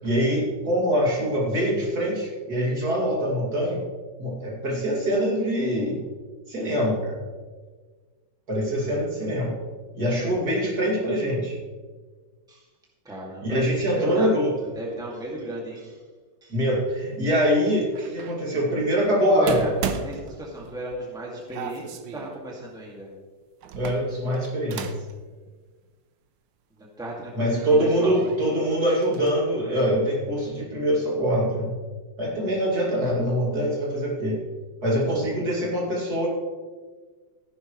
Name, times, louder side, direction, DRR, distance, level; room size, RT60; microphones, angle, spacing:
voice 1, 0.0-3.8 4.2-6.0 6.5-7.2 8.5-9.5 9.9-11.6 13.4-14.5 16.5-19.7 23.8-24.9 27.3-31.7 32.2-34.4 34.8-36.3, equal, 55° right, -4 dB, 3.1 m, -24 dB
voice 2, 13.0-13.6 14.0-14.3 14.7-16.0 16.4-16.5 19.3-19.7 20.0-23.1 26.8-28.2, right 1 dB, ahead, -3 dB, 2.1 m, -34 dB
sound 1, 17.9-18.4 19.5-20.9 21.5-22.4 23.6-25.1 25.5-25.6 26.8-26.9 27.4-28.4 28.8-29.3, right 7 dB, 80° right, 1.4 m, -36 dB
15.0 x 10.5 x 3.2 m, 1.4 s
omnidirectional pair, 2.0 m